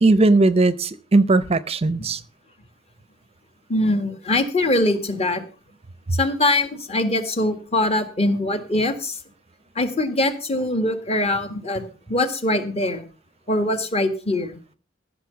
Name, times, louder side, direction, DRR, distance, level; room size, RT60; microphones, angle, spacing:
voice 1, 0.0-2.2, right 2 dB, 30° right, 0.6 m, -18 dB
voice 2, 3.7-5.4 6.1-9.2 9.8-11.8 12.1-13.1 13.5-14.6, left 1 dB, 35° left, 1.8 m, -22 dB
15.0 x 6.6 x 7.0 m
head